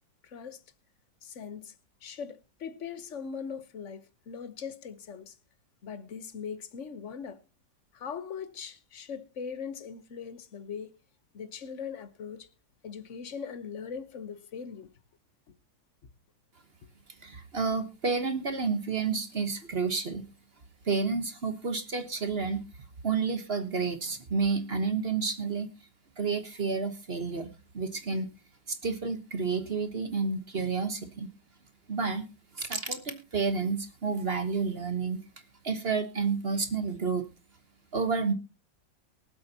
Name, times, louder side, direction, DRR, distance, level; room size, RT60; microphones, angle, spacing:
voice 1, 0.2-0.6 1.2-1.7 2.0-5.4 5.8-7.4 7.9-10.9 11.3-12.5 12.8-14.9, left 6 dB, 45° left, 1.2 m, -40 dB
voice 2, 17.2-20.3 20.8-22.6 23.0-25.7 26.2-28.3 28.7-31.3 31.9-32.2 32.5-35.2 35.6-37.2 37.9-38.3, right 4 dB, 40° right, 1.2 m, -30 dB
23.5 x 8.0 x 2.9 m
omnidirectional pair, 2.0 m